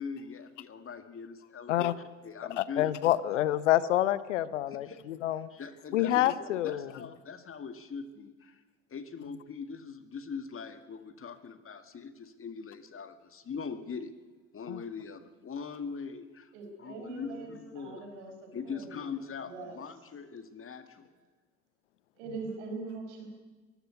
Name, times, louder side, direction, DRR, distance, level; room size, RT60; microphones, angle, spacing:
voice 1, 0.0-1.9 2.2-2.9 4.7-5.0 5.3-8.6 8.9-14.1 14.5-16.5 16.8-18.1 18.5-21.1, left 5 dB, 35° left, 10 dB, 2.1 m, -42 dB
voice 2, 2.6-5.5 5.9-6.9 14.7-14.8, left 13 dB, 80° left, 18 dB, 0.9 m, -27 dB
voice 3, 16.5-19.8 22.2-23.3, right 3 dB, 75° right, 3 dB, 5.2 m, -42 dB
23.0 x 14.5 x 8.3 m, 1.3 s
figure-of-eight pair, 55°, 36 cm